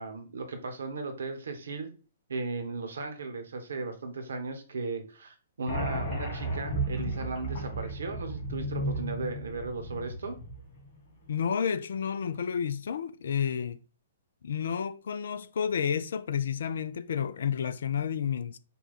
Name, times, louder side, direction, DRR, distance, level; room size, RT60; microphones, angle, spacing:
voice 1, 0.0-1.9 2.3-10.4, right 3 dB, 65° right, 1.0 m, -36 dB
sound 1, 5.7-10.9, right 1 dB, 45° left, 2.3 m, -34 dB
voice 2, 11.3-13.8 14.4-18.6, left 7 dB, 60° left, 0.4 m, -30 dB
5.5 x 2.3 x 4.2 m
figure-of-eight pair, 120°, 0 cm